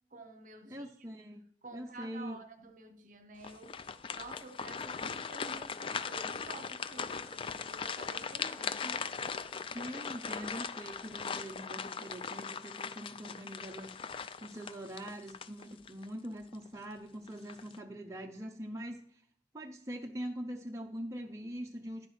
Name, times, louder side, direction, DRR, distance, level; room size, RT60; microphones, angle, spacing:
voice 1, 0.1-0.9 1.6-9.2, right 3 dB, 45° right, 0.8 m, -50 dB
voice 2, 0.7-1.4 1.7-2.4 9.7-19.2 19.5-22.1, equal, 15° right, 0.6 m, -43 dB
sound 1, 3.4-16.1 16.5-16.7 17.3-17.8, left 6 dB, 30° left, 0.3 m, -39 dB
10.5 x 10.5 x 3.2 m
head